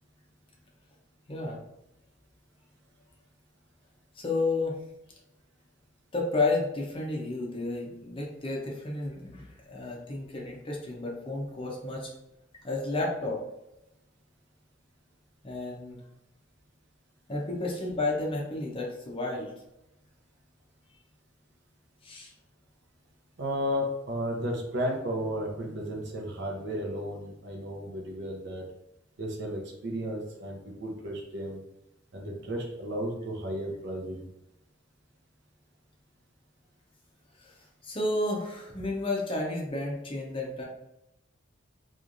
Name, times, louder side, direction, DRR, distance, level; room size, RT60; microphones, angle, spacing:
voice 1, 1.3-1.6 4.2-4.8 6.1-12.1 12.6-13.4 15.4-16.0 17.3-19.5 22.0-22.3 37.4-37.5 37.8-40.7, left 2 dB, 30° left, -2 dB, 0.6 m, -31 dB
voice 2, 23.4-28.6 29.2-31.6 32.1-34.2, equal, 65° right, 1 dB, 0.7 m, -33 dB
3.1 x 2.4 x 2.5 m, 0.89 s
head